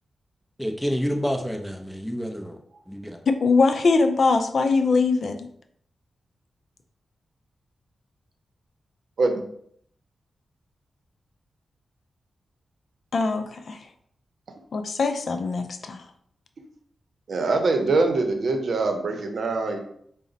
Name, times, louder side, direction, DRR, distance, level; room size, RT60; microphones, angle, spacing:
voice 1, 0.6-2.6 2.9-3.2, equal, 5° left, 0.6 m, -28 dB
voice 2, 3.4-5.4 13.1-13.4 14.7-16.0, left 4 dB, 60° left, 0.4 m, -21 dB
voice 3, 17.3-19.8, right 3 dB, 65° right, 0.7 m, -23 dB
5.0 x 2.1 x 3.9 m
cardioid pair, 80°, 0 cm